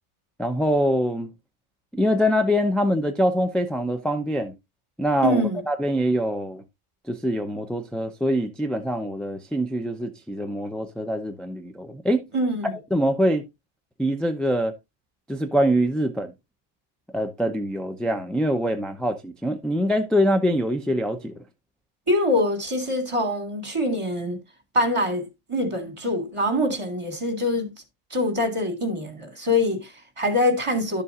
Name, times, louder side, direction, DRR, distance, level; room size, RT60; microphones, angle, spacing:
voice 1, 0.4-1.3 1.9-4.5 5.0-6.6 7.1-12.3 12.7-13.4 14.0-14.7 15.3-16.3 17.1-21.3, equal, ahead, 0.4 m, -24 dB
voice 2, 5.2-5.6 12.3-12.7 22.1-24.4 24.7-25.2 25.5-27.7 28.1-31.0, left 1 dB, 25° right, 1.8 m, -24 dB
11.5 x 6.9 x 2.5 m
omnidirectional pair, 1.3 m